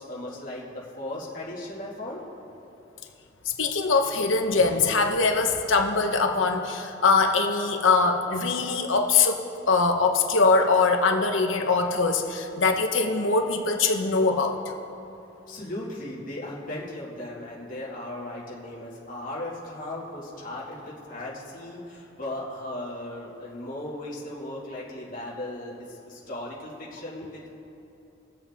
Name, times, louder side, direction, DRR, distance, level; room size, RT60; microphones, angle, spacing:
voice 1, 0.0-2.2 15.5-27.5, left 1 dB, 45° left, -6 dB, 1.9 m, -37 dB
voice 2, 3.6-14.6, left 4 dB, 90° left, 4 dB, 1.0 m, -22 dB
22.0 x 7.6 x 3.5 m, 3.0 s
head